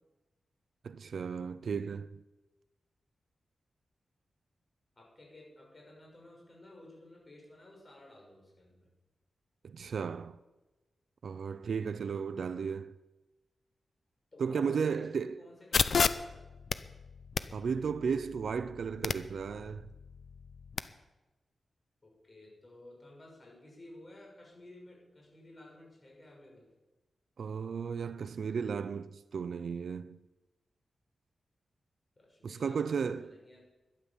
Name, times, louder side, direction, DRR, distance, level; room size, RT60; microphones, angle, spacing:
voice 1, 0.8-2.1 9.6-10.4 11.2-12.9 14.4-15.4 17.5-19.9 27.4-30.3 32.4-33.4, right 6 dB, 65° right, 0.5 m, -34 dB
voice 2, 5.0-8.9 12.0-12.3 14.3-16.5 22.0-26.7 32.2-33.6, left 1 dB, 30° left, 6.2 m, -54 dB
sound 1, 15.7-20.8, left 5 dB, 55° left, 0.6 m, -34 dB
12.0 x 11.0 x 7.3 m
wide cardioid pair, 135°, 0 cm